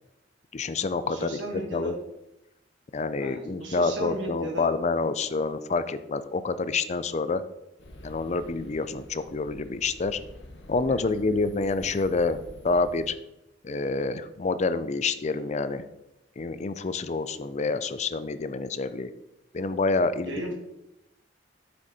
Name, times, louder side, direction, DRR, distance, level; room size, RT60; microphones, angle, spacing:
voice 1, 0.5-1.3 1.7-1.9 2.9-7.4 8.0-10.2 10.7-13.1 13.6-15.8 16.4-19.1 19.5-20.5, left 3 dB, 40° left, 13 dB, 0.4 m, -27 dB
voice 2, 1.0-2.0 3.2-4.7 10.9-11.0 20.2-20.5, right 1 dB, 85° right, 0 dB, 2.1 m, -35 dB
sound 1, 7.8-13.1, left 1 dB, 65° left, 1.1 m, -47 dB
7.9 x 6.3 x 4.2 m, 0.89 s
head